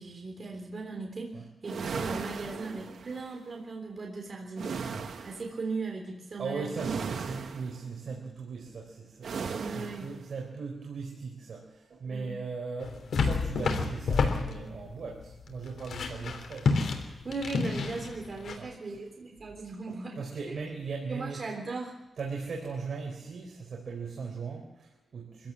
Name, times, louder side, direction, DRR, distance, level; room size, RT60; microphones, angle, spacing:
voice 1, 0.0-4.7 5.2-6.7 9.6-10.1 12.1-12.4 17.2-20.2 20.4-20.5 21.1-22.0, right 3 dB, 45° right, 2 dB, 3.5 m, -38 dB
sound 1, 1.6-3.3 4.6-5.5 6.7-7.8 9.2-10.2, right 5 dB, 90° right, 1.9 m, -36 dB
voice 2, 6.4-9.3 9.7-16.8 18.6-19.1 19.9-21.5 22.2-25.5, right 4 dB, 70° right, 0 dB, 4.3 m, -38 dB
sound 2, 12.8-18.6, left 4 dB, 90° left, 3.4 m, -30 dB
24.5 x 16.5 x 7.5 m, 0.98 s
wide cardioid pair, 125°, 0 cm